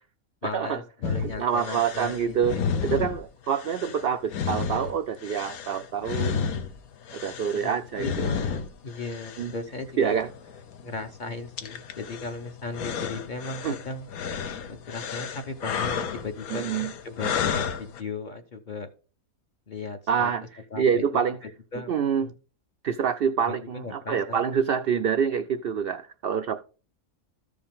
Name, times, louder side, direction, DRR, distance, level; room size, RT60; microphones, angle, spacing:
voice 1, 0.4-2.8 7.5-7.7 8.0-10.2 10.8-14.1 14.7-18.9 19.7-20.3 20.7-21.2 21.7-22.3 23.5-24.4, left 3 dB, 45° left, 0.7 m, -36 dB
sound 1, 1.0-18.0, left 6 dB, 85° left, 1.3 m, -33 dB
voice 2, 1.4-2.6 2.8-6.4 7.1-8.3 9.4-9.5 10.0-10.3 13.6-13.8 16.5-16.9 17.2-17.3 20.1-20.4 20.8-21.4 21.9-22.3 22.8-26.6, right 7 dB, 80° right, 0.5 m, -26 dB
14.0 x 5.1 x 3.5 m
omnidirectional pair, 1.5 m